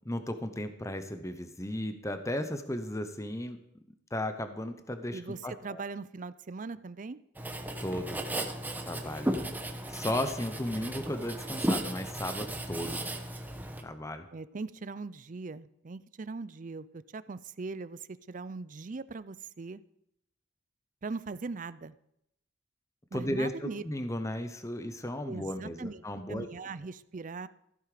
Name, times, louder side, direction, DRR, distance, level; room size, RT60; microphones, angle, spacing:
voice 1, 0.0-3.6 4.1-5.8 7.8-8.2 8.8-9.3 9.9-13.0 13.8-14.3 23.1-26.5, left 1 dB, 15° left, 8 dB, 0.9 m, -35 dB
voice 2, 5.1-7.2 14.3-19.8 21.0-22.0 23.1-23.8 25.3-26.0 26.3-27.5, right 4 dB, 45° right, 16 dB, 0.5 m, -40 dB
Writing, 7.4-13.8, right 1 dB, 10° right, 1.1 m, -35 dB
15.0 x 8.5 x 5.1 m, 0.77 s
head